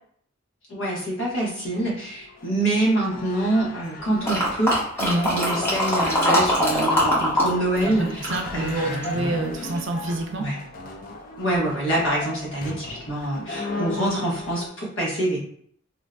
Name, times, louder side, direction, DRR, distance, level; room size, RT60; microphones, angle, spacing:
voice 1, 0.7-9.2 10.4-10.6 11.4-15.4, right 1 dB, 75° left, -4 dB, 1.1 m, -26 dB
sound 1, 1.2-14.7, left 3 dB, 45° left, 0.4 m, -36 dB
sound 2, 4.2-7.5 7.8-9.2 9.7-9.8, equal, 10° left, 0.8 m, -22 dB
voice 2, 5.0-5.3 8.0-10.5, right 2 dB, 65° right, 3 dB, 0.5 m, -27 dB
3.6 x 2.5 x 2.2 m, 0.65 s
head